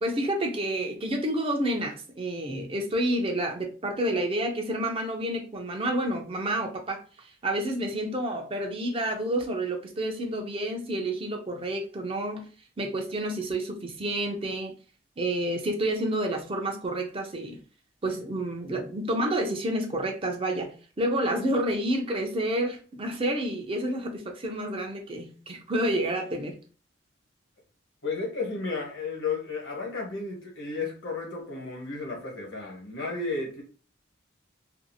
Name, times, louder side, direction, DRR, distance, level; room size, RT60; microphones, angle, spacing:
voice 1, 0.0-12.5 12.8-14.7 15.2-17.6 18.0-26.6, right 1 dB, 30° right, 0.5 m, -29 dB
voice 2, 28.0-33.6, left 4 dB, 80° left, 1.1 m, -33 dB
2.6 x 2.4 x 2.7 m
head